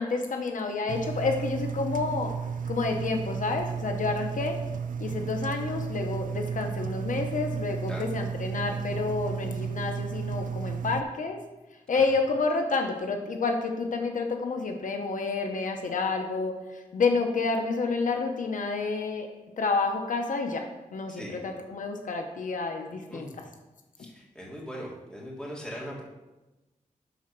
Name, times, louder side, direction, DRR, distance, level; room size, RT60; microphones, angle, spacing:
voice 1, 0.0-2.4 2.7-4.6 5.0-11.4 11.9-19.3 19.6-23.3, left 4 dB, 75° left, 4 dB, 1.0 m, -29 dB
Engine, 0.9-11.0, right 6 dB, 90° right, 0.6 m, -33 dB
voice 2, 21.1-21.6 23.1-23.5 24.0-26.0, equal, 5° left, -4 dB, 2.7 m, -40 dB
11.0 x 4.3 x 6.0 m, 1.1 s
wide cardioid pair, 95°, 13 cm